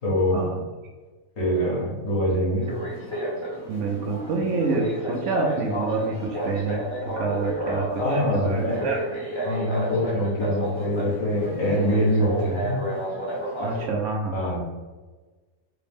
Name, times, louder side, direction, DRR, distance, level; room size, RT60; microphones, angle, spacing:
voice 1, 0.0-0.4 1.4-2.7 8.0-8.8 9.4-12.8 14.3-14.6, equal, 65° left, -5 dB, 1.7 m, -24 dB
sound 1, 2.6-13.9, right 1 dB, 25° left, 0.9 m, -31 dB
voice 2, 3.7-9.0 13.6-14.4, right 3 dB, 65° right, 0 dB, 0.8 m, -27 dB
3.4 x 2.9 x 3.4 m, 1.3 s
omnidirectional pair, 1.5 m